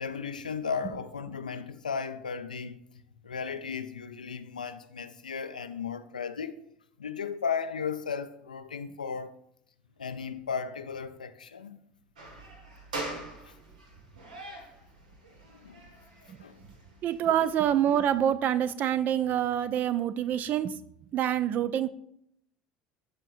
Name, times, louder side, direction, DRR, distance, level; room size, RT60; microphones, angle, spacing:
voice 1, 0.0-2.8 3.2-6.6 7.0-9.4 10.0-11.8 13.4-13.6 15.4-15.8 16.4-16.6 17.3-17.5, left 6 dB, 80° left, 0.4 m, -35 dB
sound 1, 12.2-18.2, right 2 dB, 75° right, 1.2 m, -43 dB
voice 2, 17.0-20.7 21.1-21.9, right 10 dB, 45° right, 0.4 m, -26 dB
12.5 x 4.5 x 2.5 m
figure-of-eight pair, 65°, 4 cm